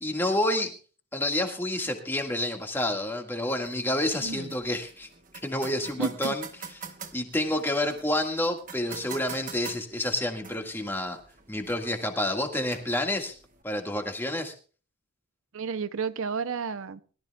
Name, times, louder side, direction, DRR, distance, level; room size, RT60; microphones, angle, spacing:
voice 1, 0.0-0.8 1.1-5.1 5.4-6.4 7.1-11.2 11.5-13.4 13.6-14.5, left 1 dB, 10° left, 1.8 m, -29 dB
sound 1, 3.6-13.6, right 6 dB, 35° right, 1.3 m, -46 dB
voice 2, 4.2-4.5 6.0-6.3 15.5-17.0, right 5 dB, 65° right, 0.6 m, -31 dB
22.0 x 13.5 x 2.3 m
head